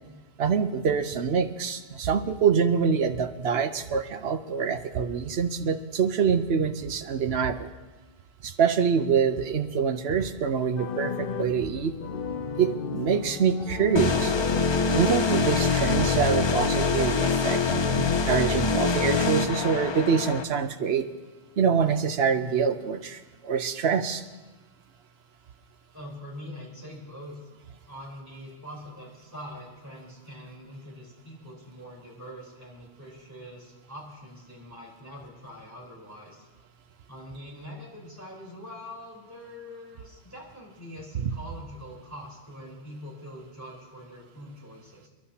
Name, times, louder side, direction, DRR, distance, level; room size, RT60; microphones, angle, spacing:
voice 1, 0.4-7.7 8.4-11.9 12.6-14.3 14.9-21.0 21.6-24.2 41.2-41.3, right 6 dB, 70° right, 9 dB, 1.0 m, -25 dB
sound 1, 10.7-15.7, left 5 dB, 60° left, 0.8 m, -34 dB
sound 2, 14.0-20.4, left 4 dB, 35° left, 0.4 m, -24 dB
voice 2, 25.9-27.5 27.9-36.5 37.1-45.1, equal, 15° right, -4 dB, 4.0 m, -43 dB
28.5 x 11.5 x 2.9 m, 1.2 s
omnidirectional pair, 1.1 m